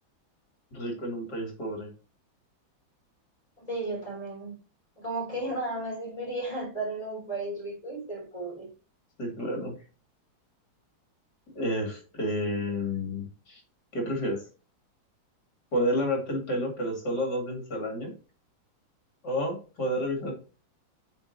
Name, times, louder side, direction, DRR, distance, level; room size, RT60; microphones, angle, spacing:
voice 1, 0.7-1.9 9.2-9.8 11.6-13.6 13.9-14.4 15.7-18.1 19.2-20.3, equal, 55° left, 2 dB, 3.0 m, -30 dB
voice 2, 3.6-4.6 5.0-8.7, right 2 dB, 15° left, -2 dB, 3.6 m, -34 dB
7.8 x 5.0 x 2.7 m, 0.35 s
omnidirectional pair, 2.2 m